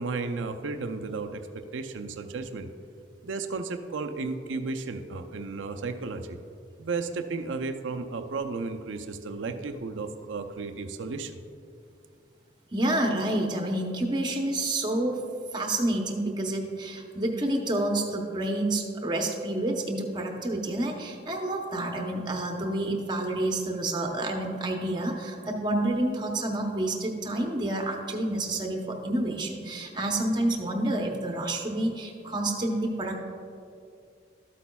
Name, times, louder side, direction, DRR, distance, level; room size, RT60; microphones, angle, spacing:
voice 1, 0.0-1.4 1.7-2.7 3.2-6.4 6.8-11.4, right 4 dB, 85° right, 7 dB, 0.5 m, -33 dB
voice 2, 12.7-15.2 15.5-33.2, right 1 dB, 25° right, 1 dB, 0.7 m, -29 dB
12.5 x 8.3 x 2.3 m, 2.4 s
head